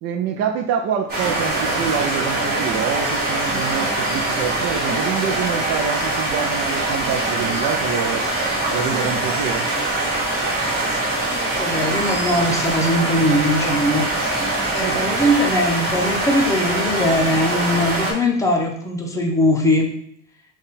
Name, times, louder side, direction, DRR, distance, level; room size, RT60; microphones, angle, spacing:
voice 1, 0.0-8.3 8.7-9.7 14.8-15.1, right 7 dB, 50° right, 3 dB, 0.4 m, -26 dB
sound 1, 1.1-18.1, right 2 dB, 30° right, 1.5 m, -23 dB
voice 2, 11.3-14.0 14.7-19.9, left 1 dB, 10° left, 1 dB, 0.6 m, -20 dB
3.6 x 2.4 x 4.1 m, 0.69 s
cardioid pair, 135°, 33 cm